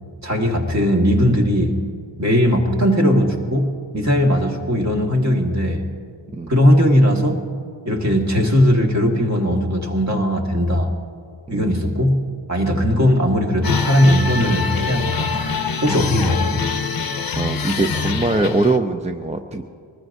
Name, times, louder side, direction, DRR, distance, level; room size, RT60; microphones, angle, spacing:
voice 1, 0.2-1.8 2.2-5.8 6.5-7.4 7.9-10.9 11.5-15.3 15.8-16.7, equal, 35° right, 1 dB, 1.8 m, -18 dB
voice 2, 11.5-11.9 12.7-12.9 15.9-16.1 17.4-19.6, right 3 dB, 15° right, 5 dB, 0.4 m, -22 dB
sound 1, 13.6-18.8, left 5 dB, 45° left, 0.7 m, -24 dB
24.0 x 20.0 x 2.6 m, 2.2 s
wide cardioid pair, 160°, 48 cm